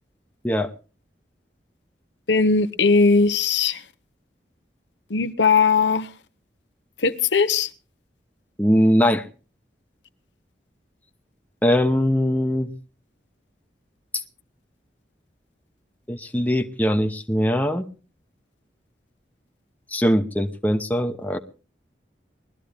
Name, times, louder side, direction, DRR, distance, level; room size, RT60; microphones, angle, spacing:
voice 1, 2.3-3.8 5.1-6.1 7.0-7.7, left 4 dB, 80° left, 0.9 m, -19 dB
voice 2, 8.6-9.2 11.6-12.7 16.1-17.8 19.9-21.4, equal, 10° left, 0.8 m, -21 dB
21.0 x 13.0 x 3.4 m
head